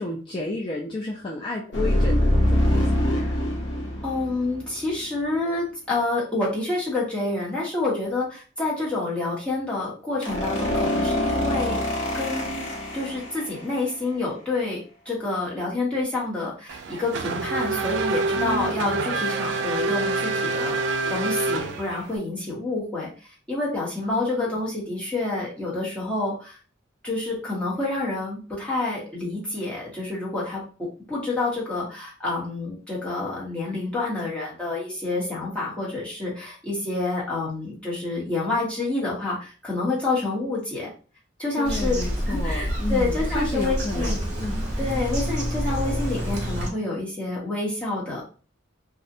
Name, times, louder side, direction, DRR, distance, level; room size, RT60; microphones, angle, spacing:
voice 1, 0.0-3.4 18.4-19.0 24.0-24.5 41.6-44.1 44.4-44.6, left 2 dB, 25° left, -2 dB, 0.3 m, -32 dB
sound 1, 1.7-5.2 10.2-13.7, left 1 dB, 70° left, 0.7 m, -24 dB
voice 2, 4.0-11.8 12.1-12.7 12.9-14.8 15.0-26.6 27.0-40.9 41.4-42.0 42.3-44.2 44.8-48.2, left 2 dB, 5° left, -6 dB, 0.9 m, -28 dB
Race car auto racing / Accelerating revving vroom, 16.7-22.2, right 3 dB, 65° right, 0.3 m, -27 dB
Bird vocalization bird call bird song, 41.7-46.7, equal, 40° right, 0.8 m, -27 dB
2.5 x 2.1 x 2.6 m, 0.37 s
head